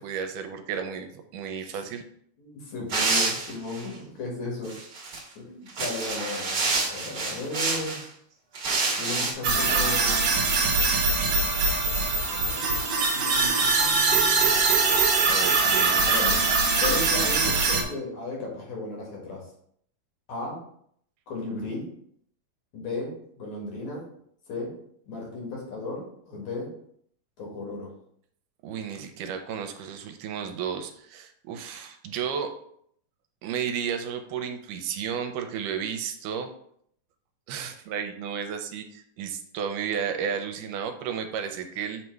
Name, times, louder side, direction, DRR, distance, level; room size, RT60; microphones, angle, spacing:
voice 1, 0.0-2.0 15.3-16.1 28.6-32.5 33.4-36.5 37.5-42.0, right 7 dB, 85° right, 6 dB, 2.1 m, -33 dB
voice 2, 2.4-4.7 5.4-8.0 9.0-10.2 12.3-12.7 13.1-14.5 16.1-16.4 16.8-19.4 20.3-20.6 21.3-21.9 22.7-24.0 24.5-24.7 25.0-26.7 27.4-27.9, left 2 dB, 60° left, -2 dB, 2.9 m, -35 dB
sound 1, 2.9-3.9 4.6-5.2 5.7-8.0 8.5-9.3, right 3 dB, 45° right, 1.6 m, -28 dB
sound 2, 9.4-17.8, right 4 dB, 65° right, 1.7 m, -22 dB
7.8 x 3.2 x 4.5 m, 0.66 s
omnidirectional pair, 3.8 m